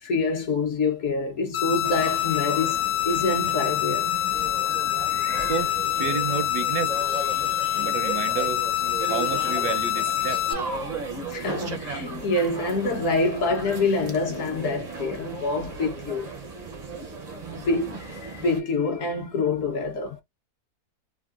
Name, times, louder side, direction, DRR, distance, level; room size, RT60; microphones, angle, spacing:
voice 1, 0.0-4.1 10.1-10.2 10.7-10.8 11.3-16.3 17.6-20.2, left 3 dB, 60° left, 1.1 m, -26 dB
sound 1, 1.5-10.5, left 13 dB, 85° left, 1.2 m, -26 dB
sound 2, 1.8-18.6, right 3 dB, 55° right, 0.4 m, -36 dB
voice 2, 6.0-6.9 7.7-8.7 9.0-10.4, right 7 dB, 85° right, 1.2 m, -30 dB
3.5 x 2.1 x 2.3 m
omnidirectional pair, 1.7 m